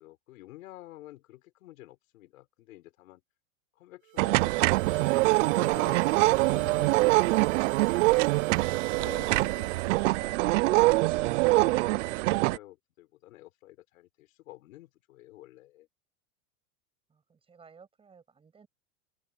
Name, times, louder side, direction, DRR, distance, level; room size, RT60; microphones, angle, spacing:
voice 1, 0.0-3.2 3.7-7.5 8.3-8.5 8.9-15.9, left 16 dB, 80° left, 6.9 m, -50 dB
sound 1, 4.0-10.2, right 23 dB, 35° right, 1.6 m, -43 dB
sound 2, 4.2-12.6, right 22 dB, 65° right, 0.5 m, -24 dB
voice 2, 17.1-18.7, right 5 dB, 15° right, 7.3 m, -57 dB
open air
supercardioid pair, 160°, 40 cm